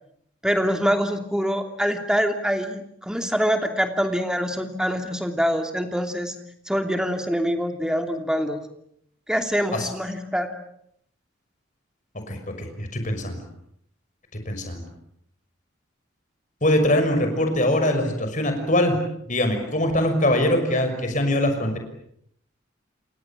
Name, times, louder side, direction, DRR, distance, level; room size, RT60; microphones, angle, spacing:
voice 1, 0.4-6.3 6.7-8.6 9.3-10.5, equal, 5° right, 5 dB, 2.8 m, -24 dB
voice 2, 12.3-13.4 14.5-14.9 16.6-19.0 19.3-21.8, left 1 dB, 40° left, 6 dB, 6.0 m, -22 dB
29.5 x 27.0 x 7.4 m, 0.72 s
head